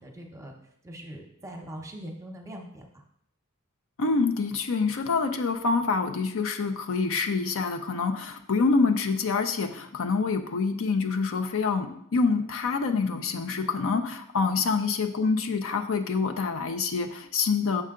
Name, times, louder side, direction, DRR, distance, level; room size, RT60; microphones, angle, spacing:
voice 1, 0.0-2.8, right 1 dB, 15° right, 2 dB, 0.9 m, -42 dB
voice 2, 4.0-17.8, left 4 dB, 65° left, 6 dB, 0.5 m, -26 dB
6.5 x 5.5 x 3.7 m, 0.71 s
head